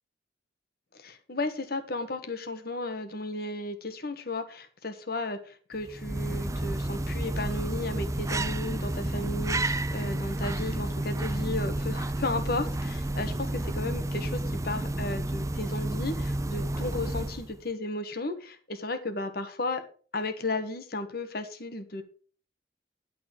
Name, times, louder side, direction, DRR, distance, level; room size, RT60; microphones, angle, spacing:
voice 1, 1.0-19.8 20.1-22.0, left 2 dB, 60° left, 8 dB, 1.4 m, -34 dB
sound 1, 5.8-17.6, right 1 dB, 20° right, 0.6 m, -31 dB
11.5 x 4.2 x 7.4 m, 0.42 s
head